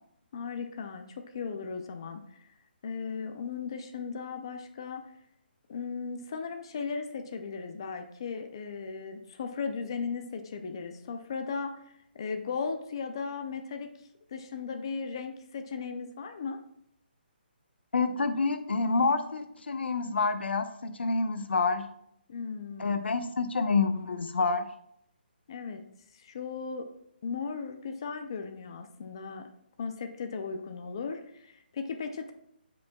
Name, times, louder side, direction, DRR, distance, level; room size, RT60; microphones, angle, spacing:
voice 1, 0.3-2.5 2.8-5.0 5.7-11.8 12.1-13.9 14.3-16.6 22.3-23.0 25.5-25.8 26.1-26.9 27.2-29.5 29.8-32.3, left 5 dB, 25° left, 6 dB, 0.4 m, -36 dB
voice 2, 17.9-21.9 22.8-24.7, left 4 dB, 90° left, 9 dB, 0.8 m, -28 dB
12.5 x 5.2 x 2.3 m, 0.73 s
hypercardioid pair, 175°, 6 cm